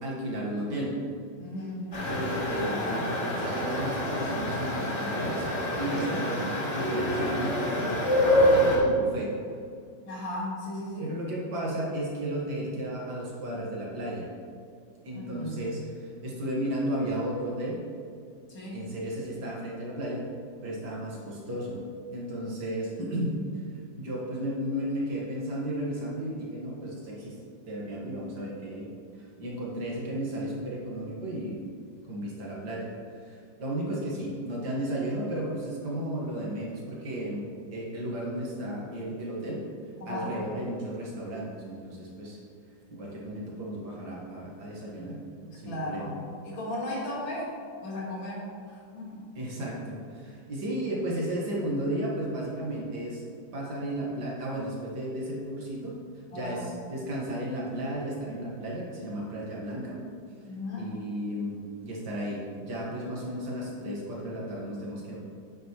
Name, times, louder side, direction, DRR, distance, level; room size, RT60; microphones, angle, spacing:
voice 1, 0.0-1.0 2.1-3.0 3.4-5.5 5.8-8.0 8.5-9.3 11.0-14.3 15.0-17.8 18.7-20.2 20.6-21.8 22.1-23.4 24.0-27.4 27.7-28.9 29.1-31.6 32.1-32.9 33.2-37.4 37.7-39.6 40.1-42.4 42.9-45.2 45.5-46.1 49.4-53.2 53.5-55.9 56.3-60.0 60.8-61.6 61.8-65.2, right 1 dB, 55° right, -4 dB, 2.2 m, -34 dB
voice 2, 1.4-1.9 5.7-6.2 10.0-11.1 15.1-15.8 18.5-18.8 40.0-40.3 45.4-46.1 46.4-47.5 47.8-49.3 56.3-56.7 60.5-60.9, left 1 dB, 80° left, -5 dB, 2.8 m, -36 dB
sound 1, 1.9-8.8, equal, 40° left, 1.6 m, -27 dB
9.3 x 7.8 x 3.2 m, 2.3 s
omnidirectional pair, 2.1 m